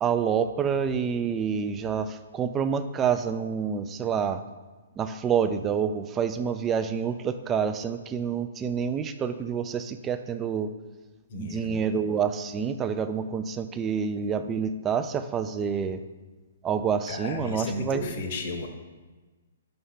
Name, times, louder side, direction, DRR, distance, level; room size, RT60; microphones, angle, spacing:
voice 1, 0.0-4.4 5.0-10.7 11.4-16.0 16.6-18.1, right 7 dB, 20° right, 10 dB, 0.3 m, -28 dB
voice 2, 11.3-11.8 17.1-18.7, left 3 dB, 50° left, 5 dB, 0.9 m, -34 dB
5.4 x 3.3 x 5.6 m, 1.3 s
figure-of-eight pair, 125°, 0 cm